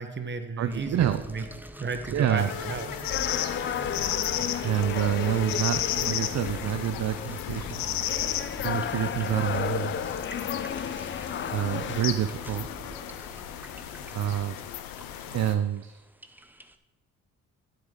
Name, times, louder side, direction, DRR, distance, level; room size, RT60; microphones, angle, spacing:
voice 1, 0.0-2.9, right 4 dB, 35° right, 8 dB, 1.2 m, -34 dB
voice 2, 0.6-1.2 2.1-2.5 4.6-8.1 8.6-10.2 11.5-12.7 14.1-14.6 15.3-16.0, right 10 dB, 50° right, 10 dB, 0.6 m, -28 dB
sound 1, 0.7-16.8, right 1 dB, 5° right, 0.7 m, -45 dB
sound 2, 2.4-15.5, left 12 dB, 80° left, 0.7 m, -34 dB
sound 3, 3.1-12.0, left 8 dB, 35° left, 0.5 m, -33 dB
9.4 x 7.8 x 3.8 m, 1.1 s
hypercardioid pair, 50°, 34 cm